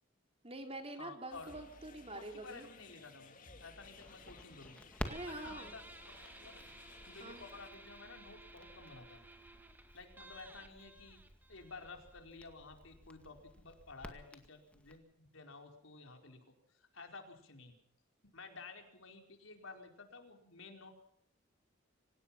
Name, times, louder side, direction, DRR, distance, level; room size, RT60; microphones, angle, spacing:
voice 1, 0.4-2.7 5.1-5.7 7.2-7.4, right 2 dB, 30° right, 4 dB, 3.7 m, -46 dB
voice 2, 1.0-1.5 2.1-4.8 5.2-5.8 6.3-6.7 7.1-9.2 9.9-11.2 11.5-16.4 16.7-17.7 18.3-20.9, left 3 dB, 80° left, 4 dB, 4.8 m, -52 dB
sound 1, 1.3-7.7, left 4 dB, 40° left, 2.4 m, -58 dB
Crackle, 3.8-15.0, equal, 5° left, 2.1 m, -52 dB
Guitar, 5.1-12.2, right 2 dB, 10° right, 2.0 m, -56 dB
26.0 x 18.0 x 5.8 m, 0.73 s
head